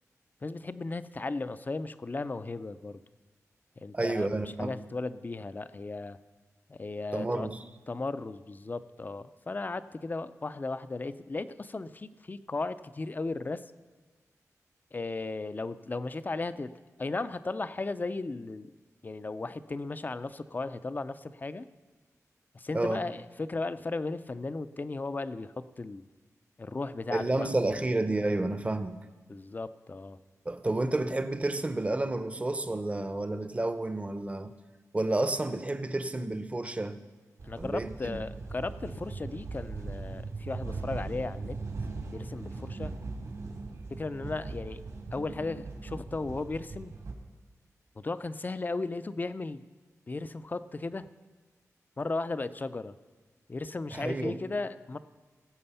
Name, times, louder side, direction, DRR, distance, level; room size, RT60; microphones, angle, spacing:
voice 1, 0.4-3.0 3.8-4.3 4.6-6.2 6.7-7.5 7.9-13.6 14.9-16.7 17.0-18.7 19.0-21.7 22.5-26.0 26.6-27.5 29.3-30.2 37.4-41.6 42.1-42.9 43.9-44.8 45.1-47.0 48.0-49.6 50.1-51.1 52.0-53.0 53.5-55.0, left 3 dB, 30° left, 13 dB, 0.5 m, -36 dB
voice 2, 3.9-4.8 7.1-7.6 22.7-23.0 27.1-29.0 30.5-34.5 34.9-37.0 37.6-38.2 53.9-54.4, right 2 dB, 25° right, 10 dB, 0.7 m, -30 dB
sound 1, 37.4-47.1, right 3 dB, 70° right, 2.1 m, -39 dB
18.0 x 7.8 x 5.6 m, 1.4 s
wide cardioid pair, 110°, 6 cm